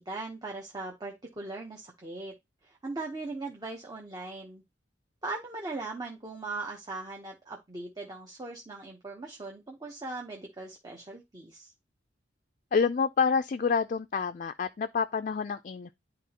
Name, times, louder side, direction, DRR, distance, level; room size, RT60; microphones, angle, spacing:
voice 1, 0.0-2.4 2.6-4.6 5.2-11.7, right 3 dB, 20° right, 0.9 m, -39 dB
voice 2, 12.7-15.9, left 5 dB, 45° left, 0.4 m, -28 dB
10.5 x 3.9 x 2.9 m
head